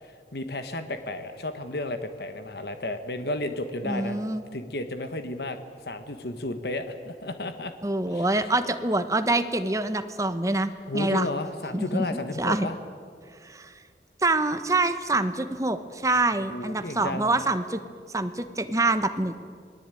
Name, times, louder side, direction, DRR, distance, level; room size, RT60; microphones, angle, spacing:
voice 1, 0.0-4.2 4.5-5.6 5.8-7.7 8.1-8.5 10.9-12.7 16.5-17.3, left 2 dB, 65° left, 8 dB, 1.5 m, -33 dB
voice 2, 3.8-4.4 7.8-11.3 11.7-12.7 13.4-13.7 14.2-17.8 18.1-19.4, right 2 dB, 20° right, 10 dB, 1.1 m, -26 dB
27.5 x 19.5 x 9.2 m, 2.1 s
head